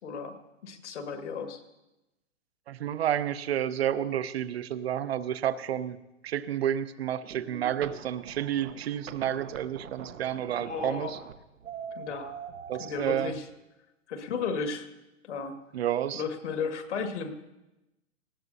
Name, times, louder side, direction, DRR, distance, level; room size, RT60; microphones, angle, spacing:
voice 1, 0.0-1.6 10.6-11.2 11.9-12.4 12.8-13.4 14.1-14.9 15.2-15.6 16.1-17.3, left 5 dB, 65° left, 6 dB, 1.9 m, -34 dB
voice 2, 2.7-6.0 6.2-11.2 12.7-13.4 15.7-16.2, right 10 dB, 55° right, 14 dB, 0.7 m, -30 dB
sound 1, 7.2-13.4, right 7 dB, 85° right, 1.0 m, -43 dB
19.0 x 15.5 x 2.7 m, 0.96 s
hypercardioid pair, 165°, 38 cm